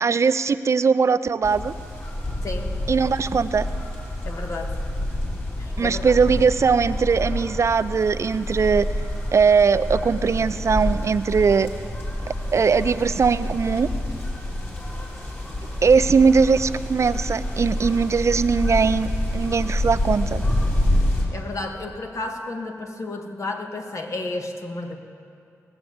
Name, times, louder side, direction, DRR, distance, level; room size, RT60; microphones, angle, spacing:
voice 1, 0.0-1.7 2.9-3.7 5.8-8.9 9.3-11.7 12.5-13.9 15.8-20.4, right 5 dB, 55° right, 14 dB, 0.4 m, -20 dB
sound 1, 1.4-21.2, left 1 dB, 35° left, 3.3 m, -27 dB
voice 2, 2.4-2.7 4.2-4.8 5.6-6.0 21.3-25.0, left 2 dB, 60° left, 3 dB, 1.6 m, -32 dB
19.0 x 7.1 x 7.8 m, 2.5 s
cardioid pair, 55°, 6 cm